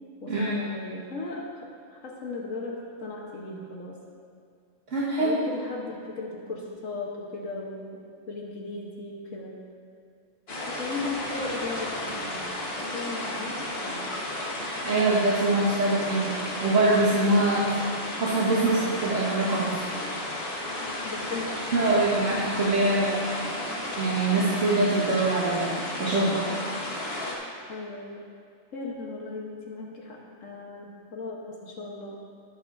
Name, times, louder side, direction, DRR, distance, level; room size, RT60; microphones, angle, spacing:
voice 1, 0.2-4.0 5.2-8.0 8.3-9.5 10.6-12.4 12.7-14.0 17.6-18.0 21.0-21.5 27.7-28.3 28.7-32.2, left 3 dB, 75° left, -2 dB, 1.5 m, -37 dB
voice 2, 4.9-5.4 14.6-16.4 16.6-17.7 18.2-19.8 21.7-23.3 24.0-26.4, right 2 dB, 65° right, -11 dB, 2.0 m, -24 dB
sound 1, 10.5-27.4, left 1 dB, 50° left, 1.6 m, -33 dB
19.0 x 7.0 x 2.6 m, 2.2 s
omnidirectional pair, 1.4 m